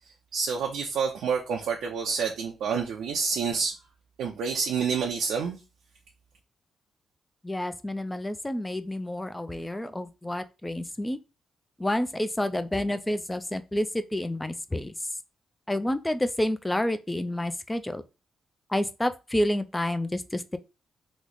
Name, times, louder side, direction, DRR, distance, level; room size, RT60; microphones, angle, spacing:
voice 1, 0.3-3.8 4.2-5.6, right 5 dB, 85° right, 0.5 m, -28 dB
voice 2, 7.4-11.2 11.8-14.9 15.7-18.0 18.7-20.6, left 1 dB, 10° left, 0.3 m, -29 dB
3.1 x 2.1 x 3.8 m
cardioid pair, 110°, 0 cm